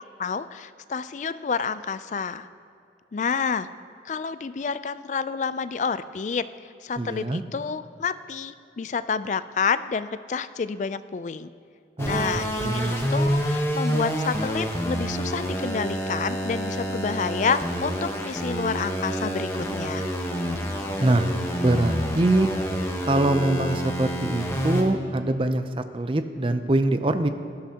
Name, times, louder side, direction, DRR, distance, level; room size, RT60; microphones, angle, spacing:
voice 1, 0.2-2.5 3.1-3.7 4.0-6.5 6.8-11.5 12.0-20.1, left 5 dB, 40° left, 14 dB, 0.3 m, -29 dB
voice 2, 7.0-7.4 12.0-13.2 21.0-21.3 21.6-22.5 23.0-27.3, right 2 dB, 30° right, 9 dB, 0.5 m, -24 dB
sound 1, 12.0-24.8, equal, 15° left, 1.1 m, -28 dB
17.5 x 11.5 x 2.9 m, 2.5 s
head